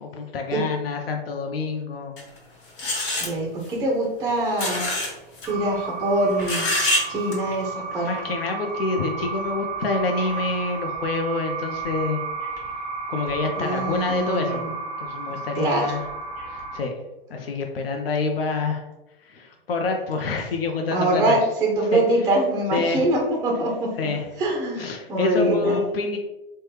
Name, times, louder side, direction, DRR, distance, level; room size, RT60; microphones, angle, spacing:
voice 1, 0.0-2.2 8.0-12.2 13.1-16.1 16.5-17.0 17.3-18.9 19.2-21.4 21.9-22.0 22.7-23.1 24.0-24.3 24.8-26.2, left 3 dB, 85° left, 3 dB, 0.5 m, -27 dB
sound 1, 2.2-2.3 2.8-3.3 4.6-5.1 5.4-5.5 6.4-7.0 7.3-7.4, left 1 dB, 60° left, 1.1 m, -24 dB
voice 2, 3.2-4.9 5.5-6.7 7.1-8.1 13.6-14.7 15.5-15.9 20.9-23.9 24.4-25.8, right 1 dB, 10° right, -1 dB, 0.4 m, -24 dB
sound 2, 5.5-16.8, right 4 dB, 10° left, 1.2 m, -32 dB
3.1 x 2.2 x 3.2 m, 1.0 s
hypercardioid pair, 120°, 29 cm